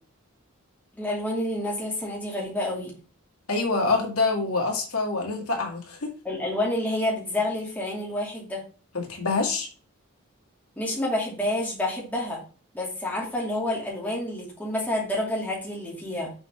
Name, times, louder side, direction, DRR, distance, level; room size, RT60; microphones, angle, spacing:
voice 1, 0.9-2.9 6.2-8.6 10.8-12.4 12.7-16.3, left 1 dB, 5° left, -4 dB, 2.5 m, -29 dB
voice 2, 3.5-6.1 8.9-9.7, left 3 dB, 85° left, 0 dB, 2.3 m, -26 dB
6.9 x 4.5 x 3.7 m, 0.38 s
head